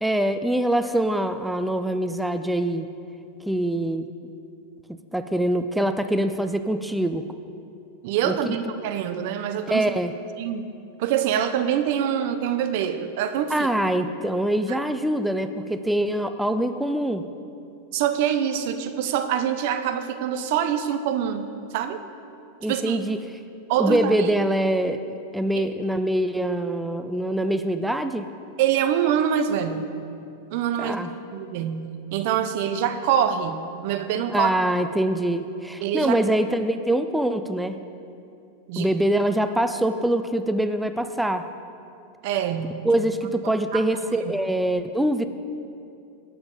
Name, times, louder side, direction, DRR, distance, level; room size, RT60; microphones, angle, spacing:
voice 1, 0.0-2.9 3.5-4.1 5.1-7.2 8.2-8.6 9.7-10.1 13.5-17.2 22.6-23.2 23.8-25.0 25.3-28.3 30.8-31.1 34.3-37.8 38.8-41.5 42.8-45.3, right 1 dB, 5° right, 9 dB, 0.4 m, -24 dB
voice 2, 8.0-9.8 10.4-10.7 11.0-13.7 17.9-21.5 21.7-22.0 22.7-23.0 23.7-24.3 25.5-25.6 28.6-29.9 30.5-31.0 31.3-34.5 35.8-36.2 38.7-38.9 42.2-42.9 43.4-43.8, right 9 dB, 60° right, 9 dB, 0.7 m, -25 dB
17.5 x 7.1 x 4.0 m, 2.6 s
hypercardioid pair, 115°, 0 cm